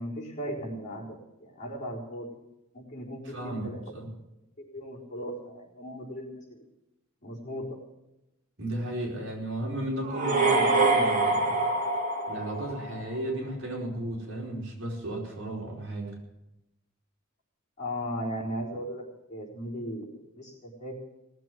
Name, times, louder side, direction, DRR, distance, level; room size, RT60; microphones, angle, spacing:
voice 1, 0.0-2.3 2.7-3.9 4.6-6.6 7.2-7.7 17.8-19.0 19.3-21.0, equal, 35° left, -4 dB, 4.3 m, -37 dB
voice 2, 3.2-4.1 8.6-11.6 12.3-16.2, right 1 dB, 60° right, -2 dB, 4.6 m, -34 dB
sound 1, 10.0-13.1, right 3 dB, 40° right, 2.6 m, -25 dB
18.5 x 7.7 x 9.3 m, 0.92 s
head